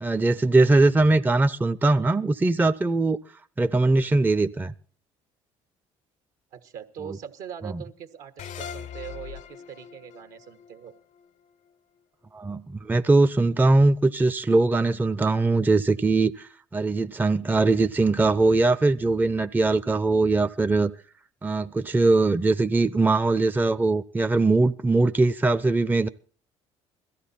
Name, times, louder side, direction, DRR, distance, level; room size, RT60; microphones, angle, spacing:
voice 1, 0.0-3.2 3.6-4.7 7.6-7.8 12.3-20.9 21.4-26.1, right 3 dB, 10° right, 0.6 m, -21 dB
voice 2, 6.5-10.9, right 8 dB, 65° right, 1.4 m, -41 dB
sound 1, 8.4-11.7, left 8 dB, 55° left, 0.7 m, -41 dB
17.0 x 13.5 x 4.2 m
hypercardioid pair, 60°, 15 cm